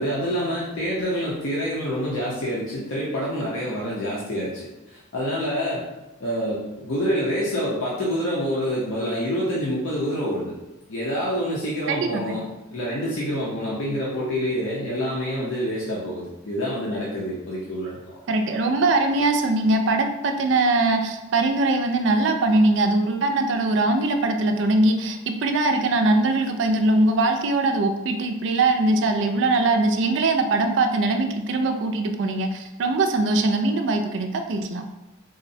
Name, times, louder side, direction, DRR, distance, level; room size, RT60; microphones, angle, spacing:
voice 1, 0.0-5.8 6.2-10.5 10.9-18.2, equal, 70° left, -6 dB, 0.6 m, -27 dB
voice 2, 11.9-12.4 18.3-34.9, right 2 dB, 55° right, 5 dB, 0.3 m, -21 dB
3.7 x 2.0 x 2.6 m, 0.99 s
head